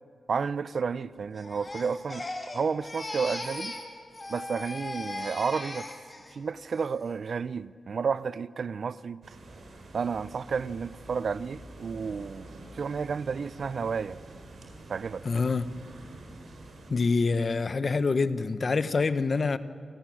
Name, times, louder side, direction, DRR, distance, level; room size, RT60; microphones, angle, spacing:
voice 1, 0.3-2.2 2.5-3.8 4.3-5.9 6.3-9.2 9.9-14.2 14.9-15.2, right 5 dB, 65° right, 0.4 m, -31 dB
Crying sobbing, 1.4-3.9 4.1-6.3 6.7-7.1, left 2 dB, 30° left, 2.4 m, -38 dB
sound 1, 9.2-16.9, right 2 dB, 85° right, 4.0 m, -47 dB
voice 2, 15.2-15.7 16.9-19.6, left 4 dB, 50° left, 0.8 m, -26 dB
28.5 x 12.5 x 9.9 m
wide cardioid pair, 95°, 0 cm